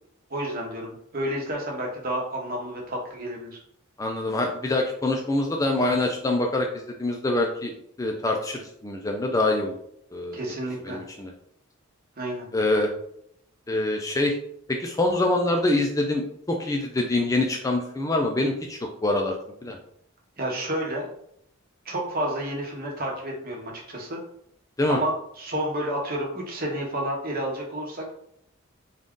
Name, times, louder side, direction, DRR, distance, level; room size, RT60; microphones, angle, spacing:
voice 1, 0.3-3.6 10.3-11.0 12.2-12.5 20.4-21.1 21.8-24.2 24.9-28.2, right 1 dB, 45° right, 0 dB, 0.9 m, -30 dB
voice 2, 4.0-7.7 8.0-9.8 10.1-10.4 10.8-11.3 12.5-12.9 13.7-14.4 14.7-19.3 19.6-19.8 24.8-25.0, left 2 dB, 15° left, 2 dB, 0.3 m, -25 dB
3.8 x 2.4 x 3.6 m, 0.71 s
head